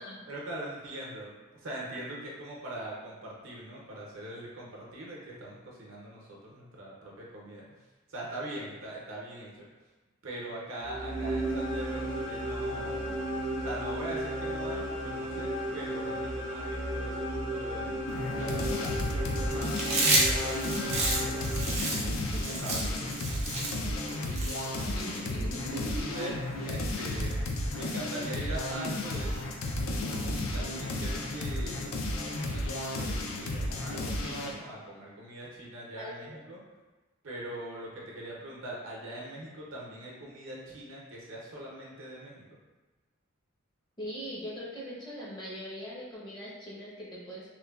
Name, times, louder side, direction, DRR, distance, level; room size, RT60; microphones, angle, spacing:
voice 1, 0.3-7.6 8.1-9.7 10.2-13.2 13.6-18.0 18.4-19.8 20.1-21.5 22.0-24.9 26.1-27.3 27.7-29.6 30.4-32.0 32.5-36.6 37.2-42.4, right 1 dB, 70° right, -4 dB, 0.6 m, -42 dB
sound 1, 10.8-22.1, right 1 dB, 50° left, 0.8 m, -34 dB
sound 2, 18.1-34.6, left 1 dB, 75° left, 0.4 m, -33 dB
Chewing mastication, 19.7-25.2, right 2 dB, 30° right, 0.5 m, -30 dB
voice 2, 22.3-22.8 24.8-26.2 36.0-36.1 44.0-47.5, equal, 20° left, -7 dB, 0.5 m, -41 dB
3.0 x 2.1 x 2.3 m, 1.2 s
head